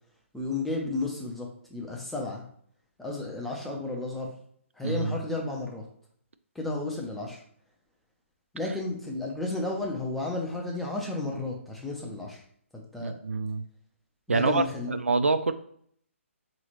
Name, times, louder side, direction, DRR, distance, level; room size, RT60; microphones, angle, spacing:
voice 1, 0.3-2.4 3.0-4.3 4.8-5.9 6.5-7.4 8.5-12.4 12.7-13.2 14.3-15.0, left 2 dB, ahead, -2 dB, 0.5 m, -33 dB
voice 2, 4.8-5.2 13.0-13.6 14.3-15.5, right 3 dB, 65° right, 10 dB, 0.3 m, -26 dB
3.8 x 3.0 x 2.9 m, 0.63 s
figure-of-eight pair, 140°, 7 cm